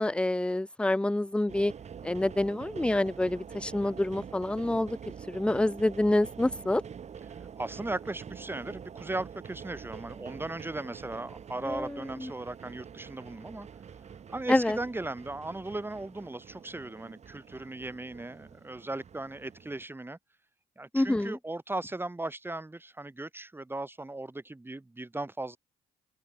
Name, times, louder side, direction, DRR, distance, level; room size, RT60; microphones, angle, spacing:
voice 1, 0.0-1.7 2.0-5.0 5.3-6.8 11.6-12.3 14.5-14.8 20.9-21.4, left 1 dB, 5° left, 0.7 m, -27 dB
sound 1, 1.5-19.8, right 7 dB, 50° right, 5.4 m, -46 dB
voice 2, 7.6-13.7 14.3-20.2 20.8-25.6, right 2 dB, 15° right, 4.5 m, -37 dB
open air
supercardioid pair, 60°, 14 cm